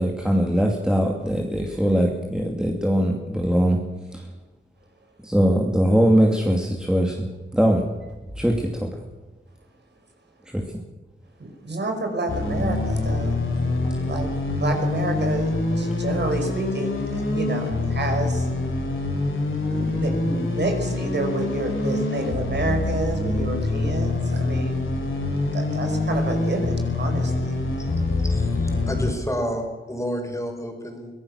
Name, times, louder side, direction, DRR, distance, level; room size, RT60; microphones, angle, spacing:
voice 1, 0.0-3.8 4.1-4.3 5.2-7.3 7.5-7.9 8.4-9.0 10.5-10.6, equal, 5° right, 0 dB, 2.5 m, -21 dB
voice 2, 11.4-13.4 14.0-18.5 19.7-24.9 25.5-27.6, right 2 dB, 60° right, 4 dB, 5.0 m, -29 dB
sound 1, 12.3-29.1, left 2 dB, 80° left, 5.1 m, -25 dB
voice 3, 28.2-31.1, equal, 15° left, 3 dB, 5.3 m, -30 dB
23.5 x 18.0 x 6.5 m, 1.2 s
wide cardioid pair, 110°, 20 cm